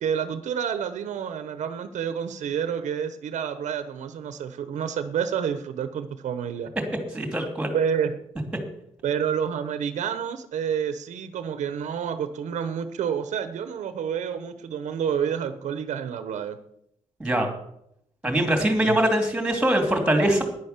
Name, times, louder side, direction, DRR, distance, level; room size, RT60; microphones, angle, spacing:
voice 1, 0.0-6.7 7.7-8.2 9.0-16.6 18.8-19.0, right 7 dB, 75° right, 10 dB, 1.0 m, -29 dB
voice 2, 7.1-7.7 17.2-17.5 18.2-20.4, right 1 dB, 10° right, 4 dB, 2.6 m, -22 dB
10.0 x 10.0 x 6.7 m, 0.74 s
cardioid pair, 145°, 12 cm